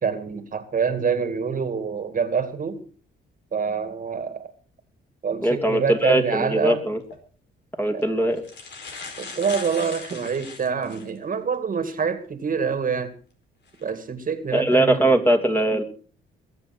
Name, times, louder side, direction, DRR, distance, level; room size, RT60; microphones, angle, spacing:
voice 1, 0.0-2.8 3.5-4.5 5.2-6.8 7.9-8.0 9.2-13.1 13.8-15.3, right 6 dB, 45° right, 2.1 m, -26 dB
voice 2, 5.4-7.0 7.8-8.4 14.5-15.8, right 1 dB, 10° left, 2.8 m, -20 dB
sound 1, 7.0-7.2 8.0-8.1 8.4-11.2 11.7-11.8 13.7-13.9 14.5-14.8, left 4 dB, 60° left, 4.8 m, -39 dB
22.0 x 8.1 x 5.9 m
cardioid pair, 90°, 20 cm